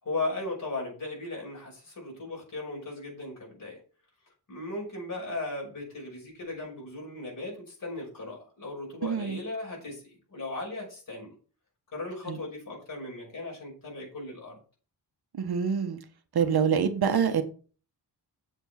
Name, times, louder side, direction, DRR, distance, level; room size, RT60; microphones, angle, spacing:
voice 1, 0.0-3.8 4.5-11.3 11.9-14.6, left 2 dB, 50° left, -2 dB, 6.0 m, -37 dB
voice 2, 9.0-9.4 12.3-12.4 15.3-16.0 16.3-17.4, right 7 dB, 60° right, 8 dB, 1.5 m, -26 dB
7.9 x 7.3 x 5.8 m, 0.39 s
wide cardioid pair, 125°, 41 cm